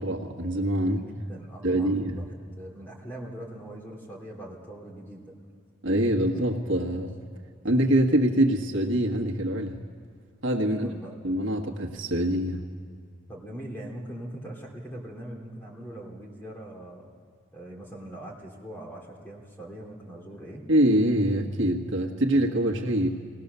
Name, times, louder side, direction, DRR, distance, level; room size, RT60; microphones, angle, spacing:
voice 1, 0.0-1.0 1.6-2.2 5.8-7.2 7.6-9.8 10.4-10.9 11.2-12.7 20.7-23.1, right 1 dB, 70° right, 1 dB, 1.6 m, -24 dB
voice 2, 0.9-5.3 10.7-11.1 13.3-17.1 17.5-20.6, right 1 dB, 10° left, -1 dB, 3.0 m, -41 dB
21.0 x 18.5 x 6.8 m, 2.1 s
head